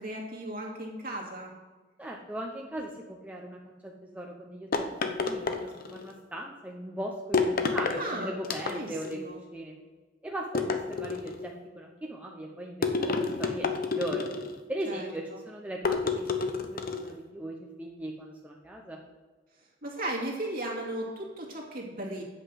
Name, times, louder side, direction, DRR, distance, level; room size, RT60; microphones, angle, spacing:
voice 1, 0.0-1.5 8.0-9.4 14.9-15.1 19.8-22.2, right 1 dB, 50° right, -1 dB, 2.5 m, -36 dB
voice 2, 2.0-9.2 9.5-9.8 10.2-14.3 14.7-19.0, right 1 dB, 10° right, -1 dB, 0.8 m, -39 dB
sound 1, 4.7-6.1 7.3-8.0 8.4-9.1 10.5-11.5 12.8-14.6 15.8-17.1, left 4 dB, 50° left, 0.9 m, -29 dB
8.1 x 5.9 x 7.8 m, 1.3 s
head